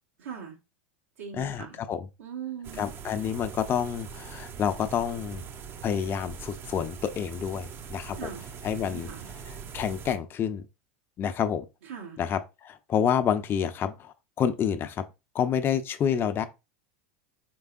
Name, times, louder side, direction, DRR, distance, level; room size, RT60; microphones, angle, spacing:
voice 1, 0.2-0.6 1.2-1.8 2.2-2.9 8.2-8.4 8.9-9.3 11.8-12.2, right 8 dB, 90° right, 1.1 m, -40 dB
voice 2, 1.3-2.1 2.7-5.4 5.8-8.3 8.6-9.1 9.5-10.7 11.2-11.6 12.2-15.0 15.3-16.4, left 8 dB, 35° left, 0.5 m, -28 dB
sound 1, 2.6-10.2, right 7 dB, 35° right, 0.5 m, -42 dB
4.5 x 3.3 x 2.4 m
hypercardioid pair, 105°, 7 cm